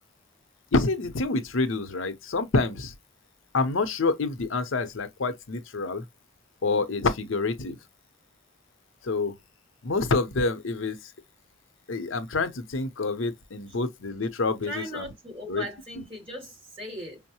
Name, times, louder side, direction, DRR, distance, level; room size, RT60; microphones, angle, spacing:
voice 1, 0.7-2.9 3.5-6.0 6.6-7.8 9.0-9.3 9.8-11.0 11.9-15.1 15.5-15.6 16.0-16.1, left 3 dB, 70° left, 0.7 m, -27 dB
voice 2, 14.7-17.2, equal, 25° right, 2.7 m, -38 dB
5.3 x 2.0 x 2.8 m
head